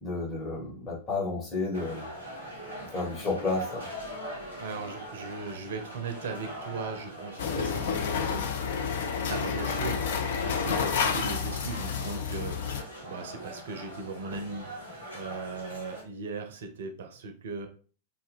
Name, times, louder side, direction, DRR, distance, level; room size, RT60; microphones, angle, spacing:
voice 1, 0.0-2.0 2.9-3.9, left 3 dB, 25° left, -4 dB, 1.6 m, -31 dB
sound 1, 1.7-16.0, right 1 dB, 90° left, 1.0 m, -42 dB
voice 2, 4.6-8.5 9.3-17.7, right 4 dB, 60° right, 6 dB, 0.5 m, -38 dB
sound 2, 7.4-12.8, left 6 dB, 60° left, 0.4 m, -30 dB
3.2 x 2.1 x 3.5 m, 0.39 s
figure-of-eight pair, 90°, 0 cm